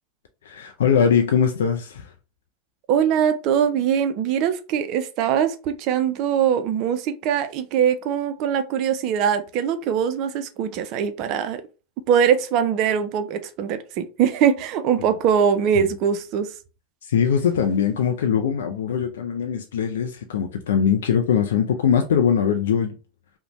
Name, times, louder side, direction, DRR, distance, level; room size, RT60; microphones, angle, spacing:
voice 1, 0.4-2.1 15.7-15.9 17.0-22.9, left 7 dB, 80° left, 0.3 m, -21 dB
voice 2, 2.9-11.6 12.1-16.5, right 8 dB, 55° right, 0.4 m, -22 dB
2.6 x 2.1 x 2.9 m
hypercardioid pair, 95°, 0 cm